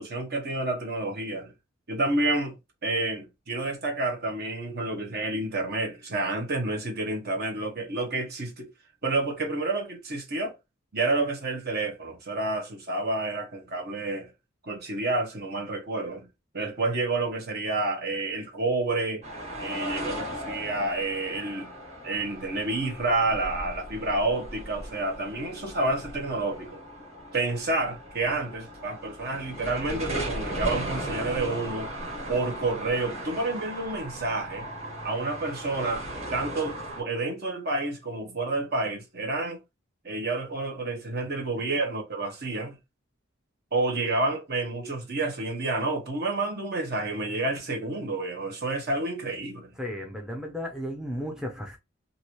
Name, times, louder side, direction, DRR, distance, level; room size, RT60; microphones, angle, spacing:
voice 1, 0.0-1.5 1.9-2.6 2.8-8.7 9.0-10.5 10.9-14.3 14.6-16.3 16.5-19.2 19.6-21.7 22.0-26.8 27.3-31.9 32.3-34.7 35.0-36.1 36.3-39.6 40.0-42.8 43.7-49.7, right 2 dB, 55° right, 1.1 m, -29 dB
sound 1, 19.2-37.0, right 1 dB, 35° right, 1.5 m, -37 dB
voice 2, 49.8-51.8, equal, 5° right, 0.5 m, -34 dB
2.9 x 2.7 x 3.0 m
head